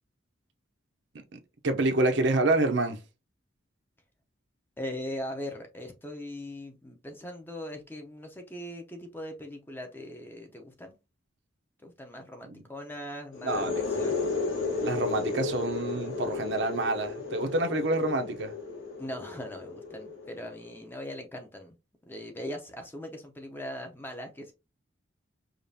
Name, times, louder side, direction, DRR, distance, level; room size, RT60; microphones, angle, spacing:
voice 1, 1.6-3.0 12.5-12.6 13.4-13.8 14.8-18.5, right 2 dB, 60° right, 0.7 m, -27 dB
voice 2, 4.8-11.0 11.8-14.4 19.0-21.8 22.1-24.5, left 1 dB, 10° left, 0.7 m, -40 dB
sound 1, 13.3-20.9, left 4 dB, 85° left, 1.2 m, -33 dB
5.1 x 2.4 x 2.7 m
head